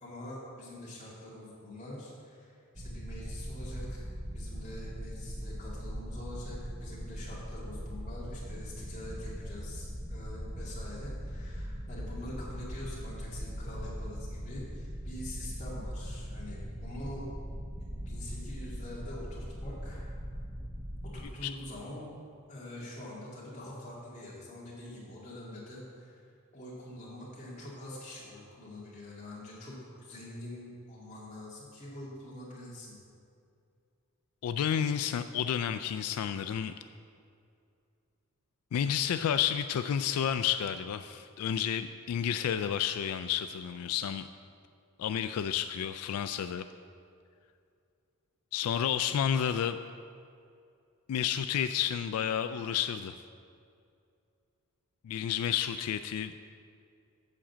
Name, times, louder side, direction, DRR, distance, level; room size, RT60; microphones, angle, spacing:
voice 1, 0.0-4.0 4.3-17.3 17.8-20.0 21.0-22.1 22.5-26.2 26.5-33.0, left 1 dB, 35° left, -7 dB, 2.3 m, -45 dB
sound 1, 2.7-21.2, equal, 10° right, 0.8 m, -40 dB
voice 2, 34.4-36.7 38.7-44.3 45.0-46.6 48.5-49.8 51.1-53.2 55.0-56.3, left 9 dB, 90° left, 12 dB, 0.3 m, -31 dB
7.6 x 5.0 x 7.2 m, 2.4 s
head